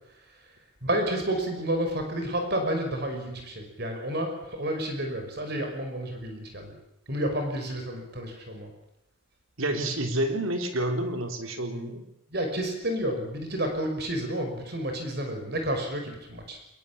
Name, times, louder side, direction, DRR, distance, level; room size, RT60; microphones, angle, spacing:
voice 1, 0.8-6.7 7.1-8.7 12.3-16.6, right 1 dB, 50° right, 4 dB, 5.8 m, -30 dB
voice 2, 9.6-12.0, right 1 dB, 80° right, 5 dB, 3.9 m, -29 dB
22.5 x 21.5 x 8.7 m, 0.86 s
head